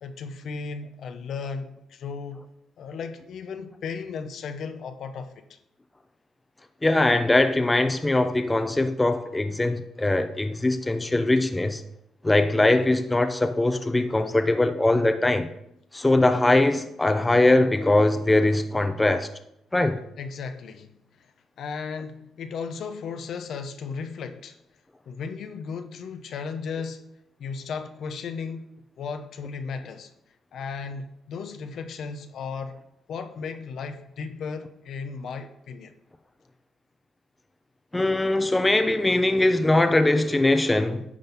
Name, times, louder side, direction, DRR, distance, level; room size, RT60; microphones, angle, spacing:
voice 1, 0.0-2.4 2.8-5.6 20.2-20.9 21.2-24.6 25.1-27.0 27.4-28.7 29.0-30.1 30.5-32.8 33.1-35.9, left 5 dB, 65° left, 0.9 m, -35 dB
voice 2, 6.8-11.8 12.2-15.5 15.9-19.3 19.7-20.0 37.9-41.0, left 2 dB, 15° left, 0.7 m, -21 dB
11.0 x 4.0 x 7.2 m
cardioid pair, 90°, 0 cm